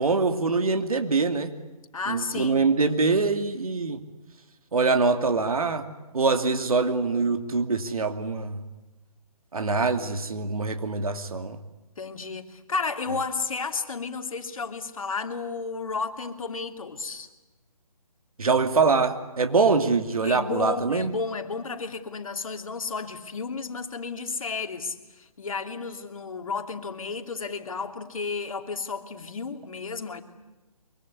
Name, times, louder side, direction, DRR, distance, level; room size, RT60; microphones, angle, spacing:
voice 1, 0.0-1.5 2.1-4.0 4.7-5.9 6.1-8.6 9.5-11.6 18.4-21.1, right 4 dB, 70° right, 7 dB, 2.7 m, -24 dB
voice 2, 1.9-2.7 12.0-17.3 20.2-30.2, left 4 dB, 60° left, 6 dB, 2.9 m, -33 dB
24.0 x 24.0 x 9.7 m, 1.1 s
figure-of-eight pair, 155°, 19 cm